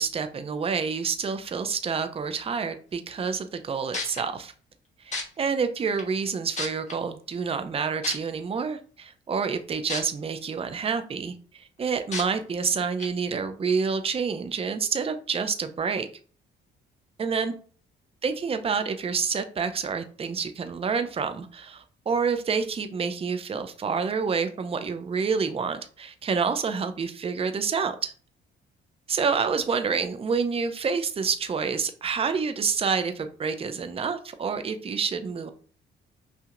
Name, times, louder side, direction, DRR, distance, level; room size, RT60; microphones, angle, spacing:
voice 1, 0.0-4.5 5.0-16.1 17.2-17.5 18.2-28.1 29.1-35.5, right 5 dB, 30° right, 9 dB, 0.5 m, -28 dB
sound 1, 3.6-3.7 3.9-4.2 5.1-5.2 6.0-6.1 6.6-6.9 8.0-8.1 9.9-10.0 10.5-10.6 12.1-12.2 13.0-13.1, left 3 dB, 35° left, 1.3 m, -30 dB
5.7 x 2.7 x 2.5 m, 0.41 s
cardioid pair, 90°, 20 cm